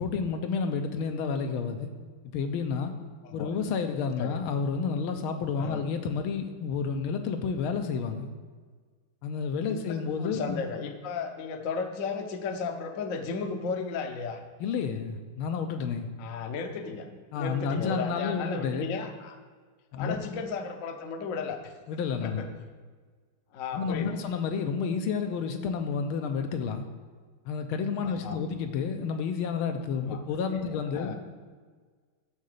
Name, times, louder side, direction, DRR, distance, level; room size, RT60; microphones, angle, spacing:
voice 1, 0.0-1.9 2.3-2.9 3.3-8.3 9.2-10.7 14.6-16.1 17.3-18.8 19.9-20.2 21.9-22.4 23.7-26.8 27.4-31.1, left 5 dB, 80° left, 6 dB, 1.5 m, -30 dB
voice 2, 3.2-3.5 4.2-4.4 5.6-5.8 9.6-14.4 16.2-17.1 17.4-19.4 20.0-21.7 22.2-22.5 23.5-24.2 28.0-28.5 30.0-30.2 30.5-30.6 30.9-31.2, left 5 dB, 60° left, 5 dB, 0.9 m, -34 dB
11.0 x 3.8 x 6.6 m, 1.5 s
omnidirectional pair, 2.3 m